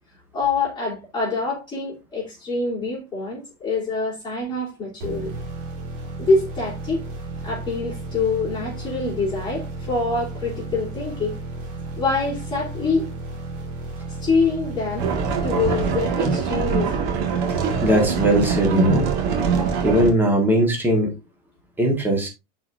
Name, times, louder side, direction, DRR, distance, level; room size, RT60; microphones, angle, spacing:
voice 1, 0.3-5.3 6.2-7.1 7.4-11.4 12.0-13.1 14.1-15.1 15.4-17.1, left 3 dB, 15° left, 3.2 m, -25 dB
sound 1, 5.0-16.7, right 2 dB, 40° right, 2.1 m, -34 dB
sound 2, 15.0-20.1, right 6 dB, 65° right, 1.9 m, -23 dB
voice 2, 17.8-19.1 19.8-21.1 21.8-22.3, right 1 dB, 5° right, 1.4 m, -19 dB
10.5 x 4.6 x 2.6 m
cardioid pair, 175°, 35 cm